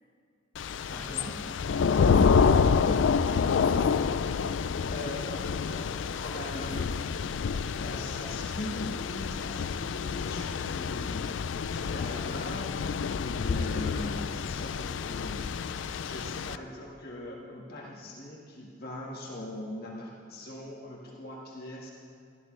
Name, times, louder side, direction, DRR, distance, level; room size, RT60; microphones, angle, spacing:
Thunder / Rain, 0.6-16.6, left 5 dB, 80° left, 0.4 m, -28 dB
voice 1, 0.9-1.4 4.9-5.9 6.1-6.9 7.8-11.3 11.6-12.8 13.1-15.4 16.0-21.9, left 1 dB, 55° left, -3 dB, 1.8 m, -41 dB
voice 2, 2.1-4.1 6.2-7.2, equal, 5° right, -5 dB, 3.6 m, -50 dB
17.5 x 13.5 x 3.3 m, 2.3 s
head